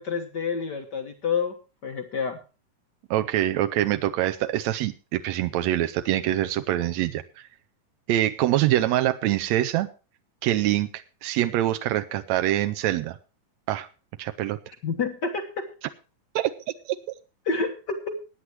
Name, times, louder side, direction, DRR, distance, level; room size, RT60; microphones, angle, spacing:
voice 1, 0.0-1.5 1.8-2.4 14.8-15.7 17.4-18.1, left 5 dB, 80° left, 4 dB, 0.9 m, -28 dB
voice 2, 3.1-7.5 8.1-9.9 10.4-13.2 13.7-13.9 14.2-14.6 16.3-16.5 16.8-17.0, right 13 dB, 80° right, 10 dB, 1.6 m, -25 dB
22.0 x 9.7 x 2.9 m, 0.34 s
omnidirectional pair, 3.9 m